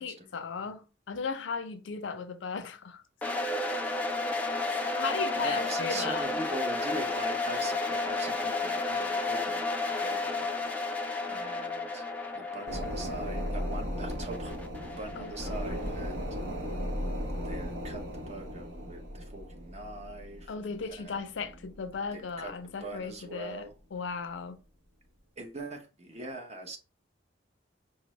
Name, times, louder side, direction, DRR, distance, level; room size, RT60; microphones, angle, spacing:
voice 1, 0.0-3.0 4.7-6.3 15.2-15.8 20.5-24.6, left 5 dB, 75° left, 0.5 m, -37 dB
sound 1, 3.2-16.1, left 3 dB, 10° left, 0.4 m, -32 dB
voice 2, 5.4-9.6 9.9-12.0 12.3-14.5 14.9-16.4 17.3-20.5 21.0-21.2 22.1-23.7 25.4-26.8, right 2 dB, 35° right, 0.7 m, -42 dB
sound 2, 12.7-22.7 23.0-23.1, equal, 85° right, 0.8 m, -37 dB
5.0 x 2.0 x 3.0 m
head